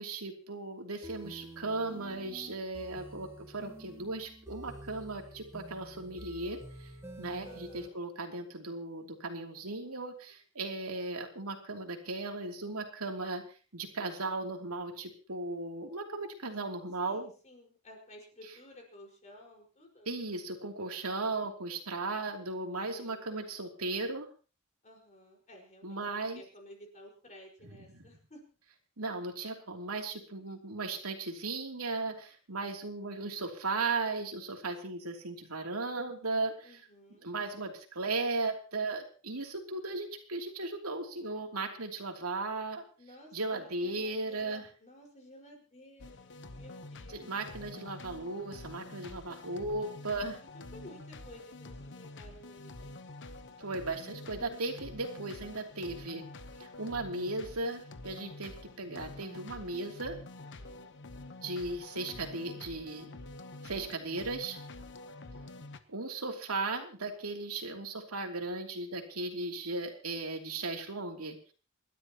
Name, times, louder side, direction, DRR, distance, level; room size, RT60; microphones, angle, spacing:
voice 1, 0.0-6.9 7.2-13.4 13.7-17.3 20.1-24.3 25.8-26.4 27.9-28.0 29.0-36.8 37.2-42.8 43.3-44.6 47.1-50.4 53.6-56.2 56.6-60.2 61.4-63.1 63.6-64.6 65.9-71.4, right 3 dB, 90° right, 3 dB, 3.0 m, -36 dB
sound 1, 1.0-7.9, right 1 dB, 10° right, 2.1 m, -49 dB
voice 2, 7.4-8.0 17.0-20.1 22.9-23.4 24.8-28.4 36.6-37.3 43.0-47.3 50.4-53.0 60.4-60.9, left 1 dB, 35° left, 1 dB, 5.2 m, -54 dB
sound 2, 46.0-65.8, left 2 dB, 55° left, 1.1 m, -47 dB
28.0 x 12.5 x 3.0 m, 0.37 s
head